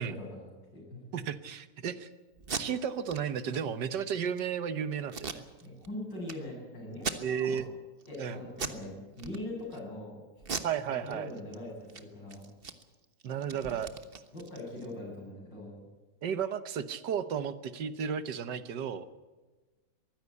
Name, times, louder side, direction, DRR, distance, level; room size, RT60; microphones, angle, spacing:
voice 1, 0.0-1.0 5.6-7.6 8.1-10.2 11.0-12.5 14.3-15.8, left 1 dB, 80° left, -1 dB, 8.6 m, -42 dB
voice 2, 1.1-2.1 2.6-5.5 7.2-7.7 8.2-8.4 10.6-11.3 13.2-13.9 16.2-19.1, right 7 dB, 75° right, 12 dB, 1.7 m, -33 dB
Packing tape duct tape, 2.4-2.6 3.1-3.2 3.5-3.6 4.0-4.4 5.1-5.9 6.3-6.4 6.9-7.6 8.0-8.2 8.5-8.8 9.2-9.8 10.4-11.6 11.8-12.0 12.3-14.9, right 5 dB, 35° right, 1.3 m, -39 dB
23.0 x 15.5 x 8.3 m, 1.3 s
omnidirectional pair, 1.9 m